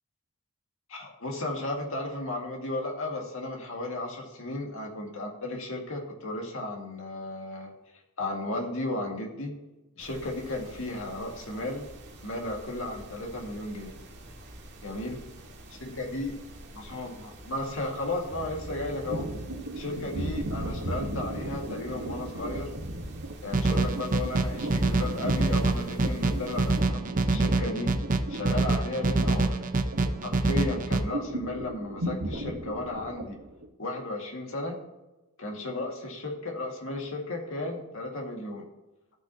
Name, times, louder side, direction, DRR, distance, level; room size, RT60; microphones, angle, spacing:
voice 1, 0.9-7.7 8.2-9.5 10.0-11.9 12.2-13.9 14.8-15.2 15.8-16.3 16.7-19.3 19.8-22.7 23.4-27.9 28.3-29.6 30.2-33.4 33.8-34.8 35.4-38.6, left 2 dB, 65° left, 1 dB, 2.1 m, -34 dB
sound 1, 10.0-26.8, right 1 dB, 55° right, 1.9 m, -48 dB
sound 2, 18.2-33.7, right 1 dB, 80° right, 1.4 m, -37 dB
sound 3, 23.5-31.0, right 2 dB, 40° right, 0.7 m, -26 dB
15.5 x 6.2 x 2.9 m, 1.0 s
head